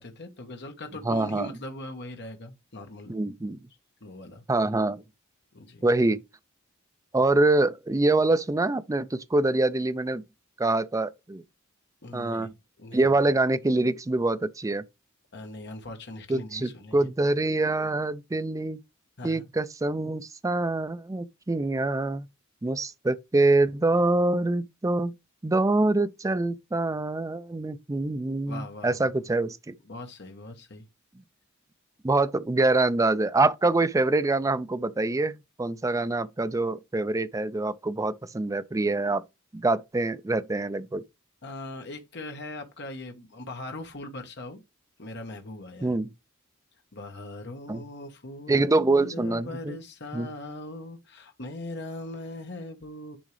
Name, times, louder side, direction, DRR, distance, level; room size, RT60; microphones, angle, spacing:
voice 1, 0.0-3.2 4.0-4.4 5.5-5.8 12.0-13.1 15.3-17.1 19.2-19.5 28.5-29.1 29.8-30.8 41.4-44.6 45.0-46.0 46.9-53.2, left 2 dB, 55° left, 1.4 m, -40 dB
voice 2, 1.0-1.5 3.1-3.6 4.5-5.0 5.8-6.2 7.1-10.2 10.6-11.4 12.1-12.5 12.9-14.8 16.3-18.8 19.2-22.3 22.6-25.1 25.4-29.7 32.0-39.2 39.5-41.0 45.8-46.1 47.7-47.8 48.5-49.8 50.1-50.3, right 2 dB, 15° right, 0.4 m, -25 dB
10.0 x 3.6 x 3.3 m
head